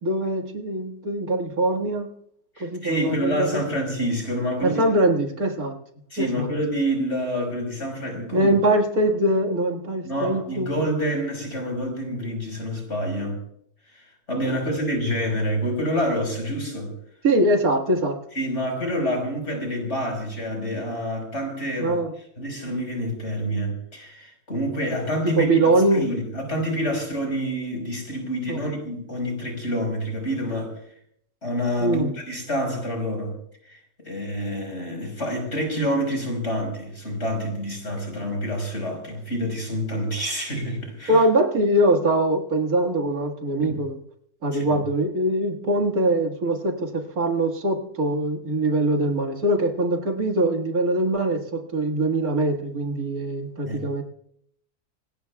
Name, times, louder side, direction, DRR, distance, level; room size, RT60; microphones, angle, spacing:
voice 1, 0.0-2.1 2.6-3.6 4.6-5.8 6.2-6.5 8.3-10.8 17.2-18.2 21.8-22.1 25.4-26.1 28.5-28.6 31.8-32.1 41.1-44.0 44.4-54.0, right 1 dB, 70° right, 2.4 m, -22 dB
voice 2, 2.6-4.8 6.1-8.5 10.0-13.4 13.9-16.9 18.3-22.0 22.4-25.6 25.9-30.7 31.4-33.4 33.6-41.2 43.6-43.8 44.5-44.8 53.7-53.8, equal, 45° left, 5.4 m, -27 dB
25.5 x 20.0 x 2.3 m
omnidirectional pair, 1.6 m